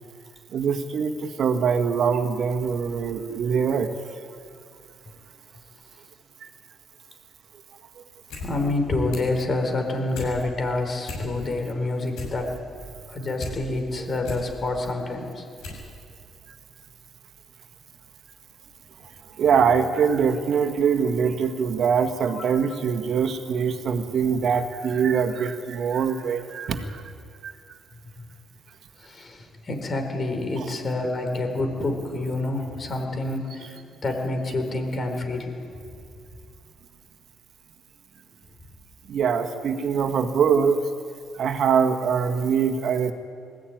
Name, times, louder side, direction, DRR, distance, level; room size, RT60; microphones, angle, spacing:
voice 1, 0.5-3.9 8.0-8.1 11.4-11.5 19.4-27.0 27.4-27.5 30.6-30.7 39.1-40.8 41.3-43.1, right 6 dB, 60° right, 7 dB, 1.7 m, -23 dB
sound 1, 8.1-8.5 8.8-9.4 9.8-10.3 10.7-10.8 11.0-11.6 11.9-13.6 14.0-14.5 15.0-15.1 15.6-15.9 16.2-16.3, left 3 dB, 80° left, 7.4 m, -36 dB
voice 2, 8.4-12.6 13.1-15.4 22.3-22.4 29.0-33.7 34.0-35.5, left 2 dB, 40° left, 4 dB, 4.5 m, -27 dB
20.0 x 15.5 x 9.3 m, 2.4 s
supercardioid pair, 75°, 0 cm